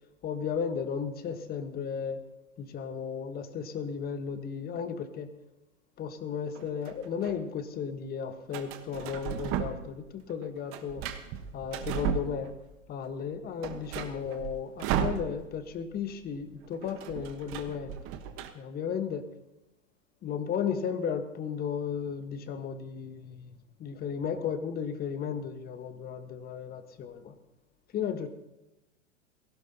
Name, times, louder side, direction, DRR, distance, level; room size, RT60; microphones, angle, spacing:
voice 1, 0.2-2.2 2.6-5.3 6.0-11.0 11.5-12.5 12.9-18.0 18.5-19.2 20.2-27.3 27.9-28.3, left 7 dB, 25° left, 9 dB, 1.4 m, -34 dB
sound 1, 6.5-7.3 8.5-10.0 10.3-12.8 13.1-13.2 13.5-15.7 16.0-16.1 16.4-18.5, right 9 dB, 35° right, 1.3 m, -35 dB
20.0 x 17.5 x 2.9 m, 0.97 s
figure-of-eight pair, 100°, 37 cm